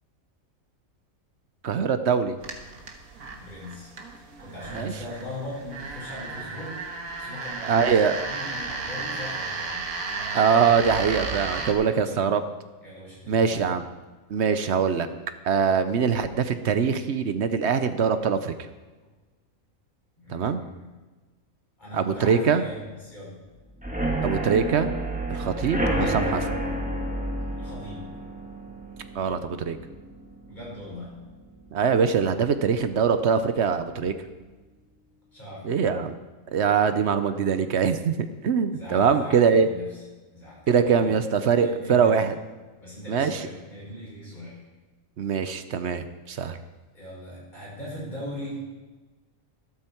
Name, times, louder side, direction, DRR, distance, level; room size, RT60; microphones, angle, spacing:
voice 1, 1.6-2.4 4.7-4.9 7.7-8.2 10.2-12.4 13.3-13.8 14.3-15.1 15.4-18.5 20.3-20.6 21.9-22.6 24.2-24.9 25.3-26.5 29.1-29.8 31.7-34.1 35.6-36.1 36.5-38.1 38.4-39.7 40.7-42.3 43.1-43.4 45.2-46.6, right 6 dB, 60° right, 10 dB, 0.9 m, -23 dB
sound 1, 2.4-11.7, right 3 dB, 90° right, 1.8 m, -34 dB
voice 2, 3.3-6.8 7.2-7.9 8.3-9.9 11.9-12.4 12.8-13.7 20.2-20.8 21.8-23.4 24.0-24.3 25.3-25.5 27.6-28.2 30.5-31.2 35.3-36.0 36.8-37.2 38.7-40.0 40.3-41.2 41.5-42.1 42.8-44.7 46.3-46.6 46.9-48.7, left 1 dB, 35° left, -5 dB, 5.6 m, -40 dB
sound 2, 23.8-31.4 31.8-32.2 32.4-32.5 32.9-33.0, right 1 dB, 5° right, 1.8 m, -30 dB
12.5 x 12.5 x 4.4 m, 1.3 s
omnidirectional pair, 1.4 m